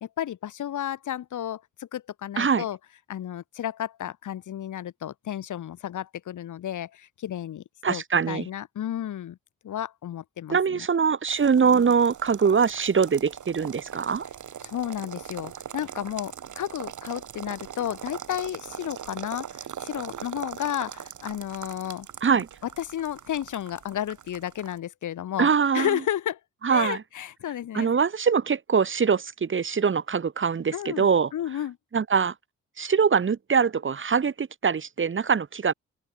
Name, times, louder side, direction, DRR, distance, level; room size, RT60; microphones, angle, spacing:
voice 1, 0.0-2.8 3.1-9.4 9.6-10.9 14.6-22.1 22.8-25.5 25.7-26.4 26.7-27.9 30.7-31.1 31.3-31.8, left 11 dB, 90° left, 2.1 m, -32 dB
voice 2, 7.8-8.5 10.5-14.3 22.2-22.5 25.4-25.9 26.6-27.0 27.7-31.3 31.9-32.3 32.8-35.7, right 6 dB, 40° right, 1.1 m, -23 dB
sound 1, 11.3-24.8, right 9 dB, 80° right, 3.7 m, -41 dB
open air
cardioid pair, 70°, 30 cm